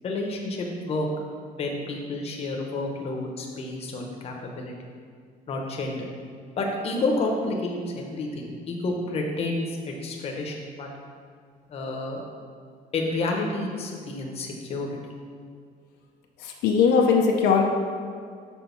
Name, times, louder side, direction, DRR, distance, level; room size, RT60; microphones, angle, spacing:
voice 1, 0.0-1.1 1.6-4.7 5.5-6.1 6.6-10.9 11.7-12.2 12.9-15.1, left 2 dB, 35° left, 0 dB, 0.9 m, -30 dB
voice 2, 16.4-17.6, left 5 dB, 80° left, 1 dB, 0.7 m, -20 dB
6.2 x 4.4 x 5.7 m, 2.1 s
cardioid pair, 165°, 17 cm